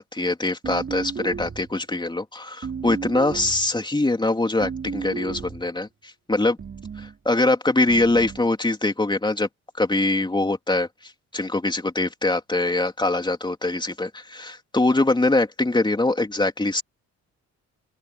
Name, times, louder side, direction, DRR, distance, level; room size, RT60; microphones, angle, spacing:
voice 1, 0.0-6.6 7.0-9.5 9.8-10.9 11.3-16.8, left 2 dB, 15° left, 3.4 m, -23 dB
sound 1, 0.6-1.8 2.6-3.7 4.6-5.7 6.6-7.2 7.9-8.5, right 6 dB, 40° right, 4.5 m, -34 dB
open air
cardioid pair, 90°, 30 cm